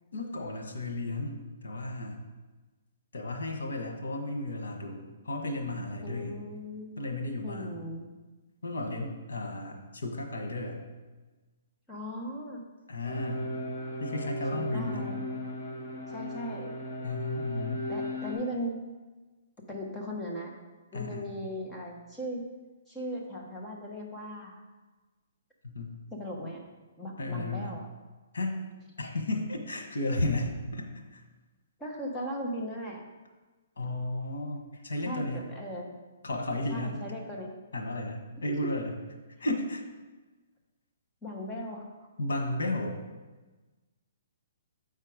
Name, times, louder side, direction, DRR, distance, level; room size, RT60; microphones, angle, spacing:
voice 1, 0.1-2.2 3.1-6.4 7.0-7.9 8.6-10.8 12.9-13.5 14.0-15.1 17.0-17.8 20.9-21.3 25.6-26.0 27.2-27.7 28.3-28.6 29.0-30.9 31.1-31.2 33.8-35.4 36.2-37.0 37.7-38.9 39.4-39.8 42.2-43.0, left 2 dB, 85° left, 2 dB, 1.4 m, -33 dB
voice 2, 6.0-7.0 7.4-8.1 11.9-12.6 14.5-15.3 16.1-16.8 17.9-18.8 19.7-20.5 20.9-22.4 22.9-24.6 26.1-26.6 27.0-27.9 31.8-33.1 35.0-35.9 36.7-37.5 41.2-42.1, equal, 10° left, -2 dB, 1.0 m, -38 dB
sound 1, 13.0-18.3, left 1 dB, 25° left, 2.2 m, -36 dB
8.1 x 4.4 x 5.0 m, 1.2 s
hypercardioid pair, 160°, 0 cm